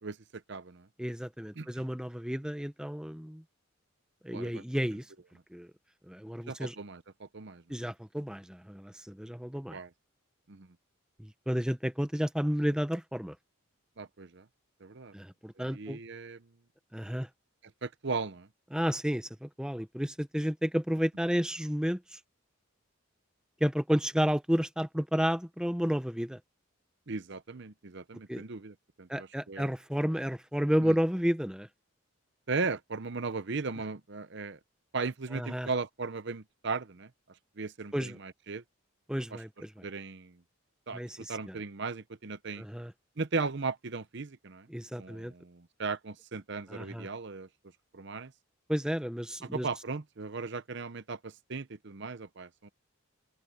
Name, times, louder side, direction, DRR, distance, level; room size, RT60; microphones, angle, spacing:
voice 1, 0.0-0.9 1.6-1.8 4.3-4.6 6.5-7.6 9.7-9.9 10.5-10.7 14.0-14.4 14.8-15.1 15.6-16.4 17.8-18.5 27.1-29.7 30.8-30.9 32.5-34.6 34.9-37.1 37.6-38.6 39.3-39.4 39.8-40.3 40.9-42.6 43.2-44.7 45.0-47.5 47.9-48.3 49.4-52.7, right 4 dB, 55° right, 0.8 m, -37 dB
voice 2, 1.0-3.4 4.2-5.1 5.5-5.7 6.1-6.7 7.7-9.8 11.2-13.3 15.1-16.0 16.9-17.3 18.7-22.2 23.6-26.4 28.3-28.4 29.1-31.7 35.3-35.7 37.9-38.2 39.1-39.8 40.9-41.6 42.6-42.9 44.7-45.3 46.7-47.1 48.7-49.7, equal, 5° right, 0.8 m, -31 dB
open air
head